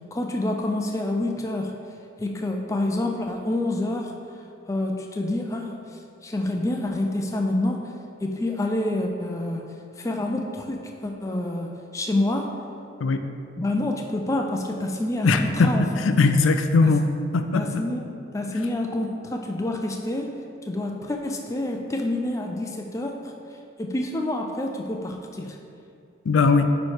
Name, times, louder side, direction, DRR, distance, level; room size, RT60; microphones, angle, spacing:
voice 1, 0.1-1.7 2.2-4.1 4.7-7.9 8.2-9.6 10.0-12.5 13.6-15.9 16.8-16.9 17.5-20.4 20.7-23.3 23.8-25.6, left 1 dB, 15° left, 2 dB, 0.4 m, -27 dB
voice 2, 15.2-17.1 17.3-17.8 26.3-26.7, left 3 dB, 90° left, 7 dB, 0.4 m, -20 dB
8.4 x 3.1 x 4.8 m, 2.5 s
head